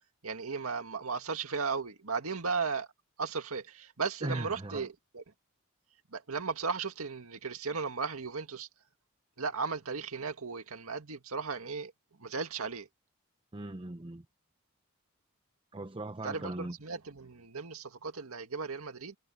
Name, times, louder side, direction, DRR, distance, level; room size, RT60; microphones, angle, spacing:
voice 1, 0.2-2.9 3.2-5.2 6.1-8.7 9.4-11.9 12.2-12.9 16.2-19.2, right 5 dB, 90° right, 2.0 m, -36 dB
voice 2, 4.2-4.9 13.5-14.2 15.7-16.8, right 2 dB, 25° right, 0.7 m, -38 dB
head